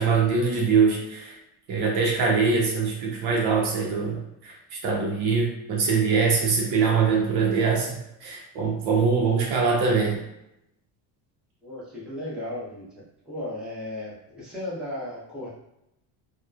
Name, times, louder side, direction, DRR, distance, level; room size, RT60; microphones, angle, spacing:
voice 1, 0.0-1.4 1.7-10.2, right 5 dB, 60° right, -1 dB, 0.6 m, -23 dB
voice 2, 11.6-12.8 13.2-15.5, left 1 dB, ahead, -8 dB, 0.8 m, -35 dB
2.9 x 2.1 x 2.3 m, 0.83 s
cardioid pair, 140°, 45 cm